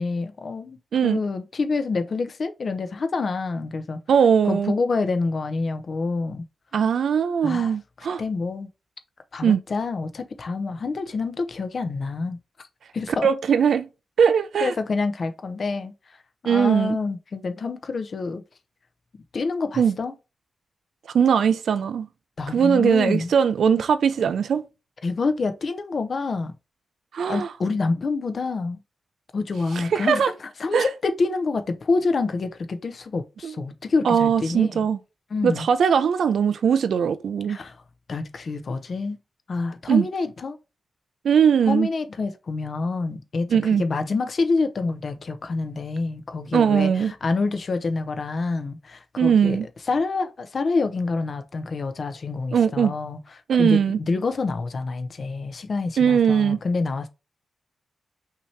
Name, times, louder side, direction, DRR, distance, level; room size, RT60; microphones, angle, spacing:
voice 1, 0.0-4.0 4.4-6.4 7.4-8.7 9.3-12.4 12.9-13.3 14.6-15.9 16.4-18.4 19.3-20.1 22.4-23.3 25.0-26.5 27.3-28.8 29.3-34.9 35.3-35.7 37.5-37.8 38.1-39.2 39.5-40.6 41.7-49.6 49.9-53.2 53.6-57.1, left 3 dB, 50° left, 0.7 m, -27 dB
voice 2, 4.1-4.7 6.7-8.2 9.4-9.6 13.2-13.9 14.2-14.7 16.5-17.0 19.8-19.9 21.1-22.1 22.5-24.6 27.1-27.5 29.8-30.3 30.7-30.9 33.4-33.5 34.0-35.0 35.4-37.6 39.9-40.1 41.2-41.9 43.5-43.8 46.5-47.1 49.2-49.7 52.5-52.9 53.5-54.0 56.0-56.6, right 7 dB, 85° right, 0.4 m, -20 dB
5.8 x 2.9 x 3.2 m
wide cardioid pair, 135°, 0 cm